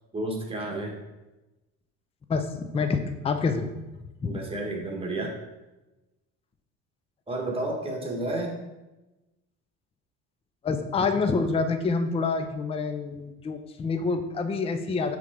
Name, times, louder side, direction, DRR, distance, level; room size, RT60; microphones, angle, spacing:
voice 1, 0.1-1.0 4.2-5.4 7.3-8.6, right 2 dB, 15° right, 0 dB, 1.5 m, -31 dB
voice 2, 2.3-3.7 4.2-4.5 10.6-15.2, left 4 dB, 20° left, 8 dB, 0.4 m, -27 dB
6.6 x 3.4 x 4.9 m, 1.1 s
cardioid pair, 110°, 33 cm